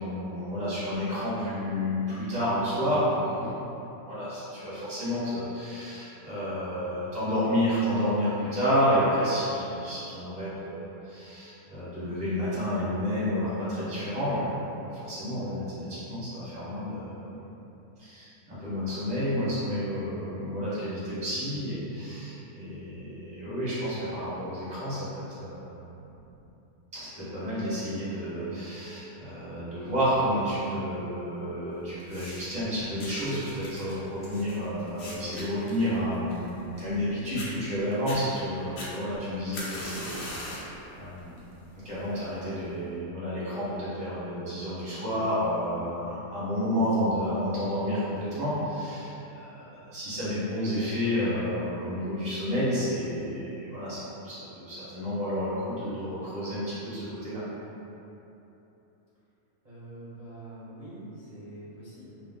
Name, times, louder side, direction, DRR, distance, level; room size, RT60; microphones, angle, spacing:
voice 1, 0.0-3.5 4.0-17.5 18.0-25.8 26.9-41.3 41.8-57.4, equal, 5° right, -12 dB, 0.7 m, -30 dB
sound 1, 32.0-32.6 33.0-37.0 37.3-37.5 37.9-38.2 38.8-40.7 41.2-41.5 42.3-42.4, left 1 dB, 60° left, 0.6 m, -41 dB
voice 2, 59.6-62.3, right 1 dB, 40° right, -15 dB, 0.7 m, -44 dB
2.3 x 2.3 x 3.5 m, 3.0 s
omnidirectional pair, 1.5 m